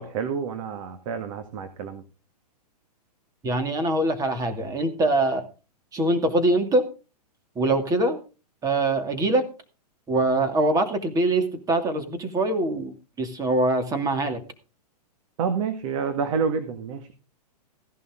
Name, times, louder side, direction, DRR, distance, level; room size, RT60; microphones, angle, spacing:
voice 1, 0.0-2.0 15.4-17.1, right 6 dB, 55° right, 8 dB, 1.9 m, -28 dB
voice 2, 3.4-5.5 5.9-6.9 7.6-8.2 8.6-9.5 10.1-14.4, right 2 dB, 15° right, 7 dB, 2.5 m, -23 dB
15.5 x 11.0 x 3.8 m, 0.33 s
hypercardioid pair, 135°, 21 cm